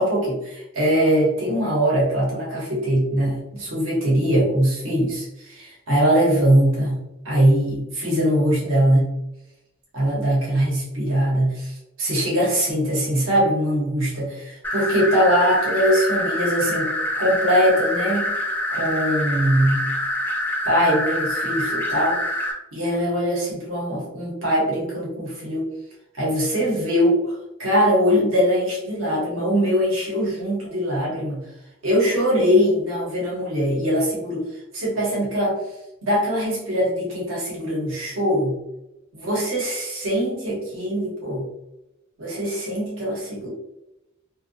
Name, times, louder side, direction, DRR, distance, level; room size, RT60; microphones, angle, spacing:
voice 1, 0.0-9.1 9.9-16.9 17.2-18.3 18.7-19.8 20.6-22.2 22.7-25.7 26.2-31.4 31.8-34.4 34.7-35.6 36.0-38.6 39.1-41.5 42.2-43.5, equal, 70° right, -4 dB, 0.9 m, -22 dB
sound 1, 14.6-22.5, left 1 dB, 10° left, 0.3 m, -26 dB
2.5 x 2.1 x 2.6 m, 0.91 s
head